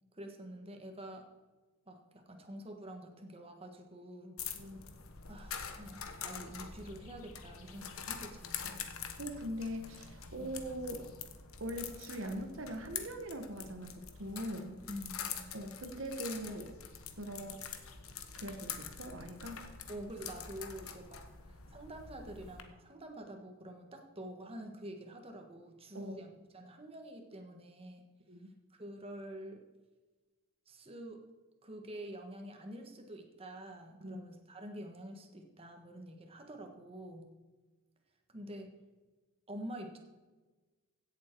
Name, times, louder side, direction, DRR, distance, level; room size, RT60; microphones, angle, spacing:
voice 1, 0.1-1.2 1.9-4.4 5.3-8.6 10.4-10.5 14.9-15.5 19.9-28.0 28.7-29.6 30.7-31.2 31.6-37.3 38.3-38.7 39.5-40.0, right 1 dB, 30° right, 3 dB, 1.4 m, -47 dB
sound 1, 4.4-22.6, left 7 dB, 90° left, 1.2 m, -45 dB
voice 2, 9.2-11.1 11.6-14.8 15.5-16.8 17.2-17.6 18.4-19.6 25.9-26.2 28.3-28.5 34.0-34.3, equal, 65° right, 5 dB, 1.3 m, -41 dB
16.0 x 7.5 x 4.6 m, 1.2 s
head